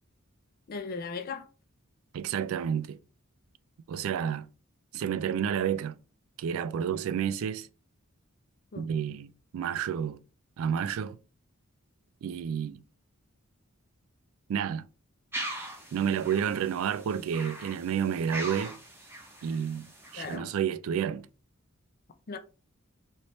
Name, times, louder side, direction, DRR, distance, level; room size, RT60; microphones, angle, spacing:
voice 1, 0.7-1.5 8.7-8.9 20.1-20.5 22.3-22.4, left 4 dB, 45° left, 0.4 m, -37 dB
voice 2, 2.1-3.0 3.9-4.5 4.9-6.0 6.4-7.7 8.8-10.2 10.6-11.2 12.2-12.8 14.5-14.9 15.9-18.8 19.4-21.3, right 8 dB, 65° right, 0.3 m, -30 dB
sound 1, 15.3-20.4, right 1 dB, 10° right, 0.7 m, -41 dB
3.2 x 2.7 x 3.0 m
head